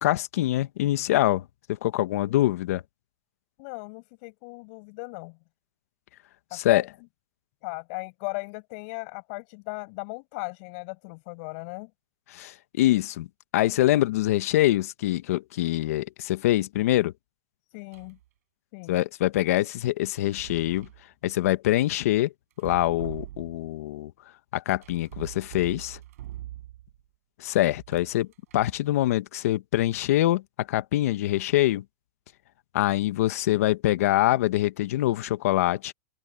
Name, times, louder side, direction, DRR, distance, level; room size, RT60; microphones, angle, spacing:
voice 1, 0.0-1.4 1.7-2.8 6.5-6.8 12.3-13.3 13.5-17.1 18.9-20.9 21.2-22.3 22.6-24.1 24.5-26.0 27.4-28.3 28.5-30.4 30.7-31.8 32.7-35.9, left 15 dB, 65° left, 1.3 m, -24 dB
voice 2, 3.6-5.4 6.5-6.9 7.6-11.9 17.7-18.2 18.7-19.0, left 34 dB, 50° left, 7.0 m, -37 dB
sound 1, 17.9-18.2 20.1-21.0 22.5-23.8 24.8-27.0 27.7-28.9, right 14 dB, 70° right, 5.4 m, -43 dB
open air
hypercardioid pair, 135°, 8 cm